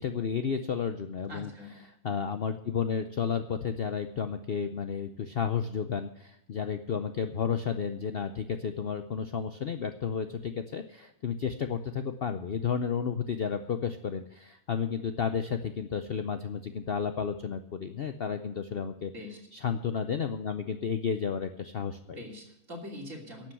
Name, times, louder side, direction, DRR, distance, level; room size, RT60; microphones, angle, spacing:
voice 1, 0.0-1.5 2.0-19.1 19.5-22.2, left 6 dB, 55° left, 8 dB, 0.7 m, -32 dB
voice 2, 1.3-1.7 19.1-19.4 22.1-23.5, left 1 dB, 55° right, 0 dB, 3.4 m, -43 dB
11.5 x 7.6 x 9.7 m, 0.81 s
omnidirectional pair, 1.6 m